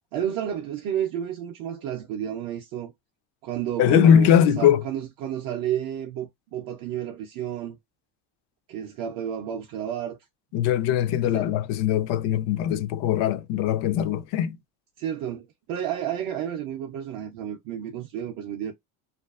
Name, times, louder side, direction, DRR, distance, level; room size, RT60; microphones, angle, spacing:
voice 1, 0.1-2.9 3.4-7.8 8.7-10.2 11.2-11.5 15.0-18.7, right 10 dB, 50° right, 0.4 m, -31 dB
voice 2, 3.8-4.8 10.5-14.6, left 9 dB, 65° left, 0.5 m, -21 dB
2.6 x 2.4 x 2.3 m
cardioid pair, 175°, 47 cm